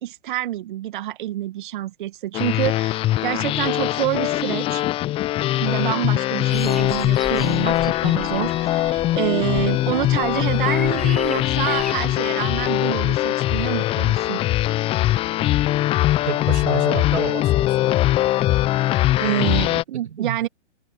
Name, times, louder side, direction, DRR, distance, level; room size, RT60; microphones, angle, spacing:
voice 1, 0.0-4.8 5.6-14.4 18.5-18.6 19.2-20.5, right 13 dB, 40° right, 2.1 m, -27 dB
sound 1, 2.3-19.8, left 15 dB, 15° left, 1.0 m, -21 dB
sound 2, 6.5-11.9, equal, ahead, 6.8 m, -37 dB
voice 2, 16.3-17.7 19.2-19.3 19.7-20.4, right 8 dB, 65° right, 2.9 m, -30 dB
open air
figure-of-eight pair, 125°, 37 cm